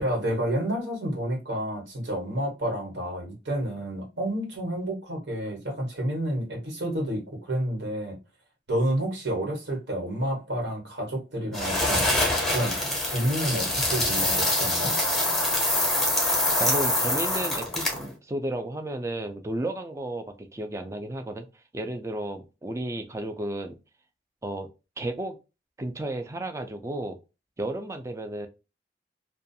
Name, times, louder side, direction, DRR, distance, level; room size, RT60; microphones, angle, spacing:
voice 1, 0.0-8.2 8.7-12.8 13.0-15.0, right 1 dB, 80° right, 1.2 m, -30 dB
sound 1, 11.5-18.1, left 1 dB, 5° left, 0.8 m, -25 dB
voice 2, 16.6-21.5 21.7-23.8 24.4-24.7 25.0-25.4 25.8-27.2 27.6-28.5, right 1 dB, 15° right, 0.3 m, -33 dB
2.4 x 2.2 x 2.6 m
head